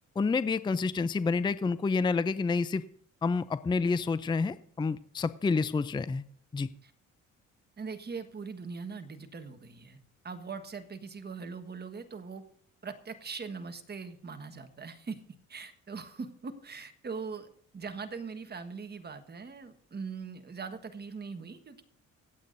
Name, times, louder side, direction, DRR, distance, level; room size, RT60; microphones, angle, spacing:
voice 1, 0.2-2.8 3.2-6.2 6.5-6.7, left 4 dB, 15° left, 15 dB, 0.4 m, -28 dB
voice 2, 7.8-10.0 10.2-12.4 12.8-15.2 15.5-17.5 17.7-21.8, right 5 dB, 35° right, 8 dB, 1.4 m, -41 dB
25.0 x 8.4 x 2.6 m, 0.64 s
cardioid pair, 90°, 30 cm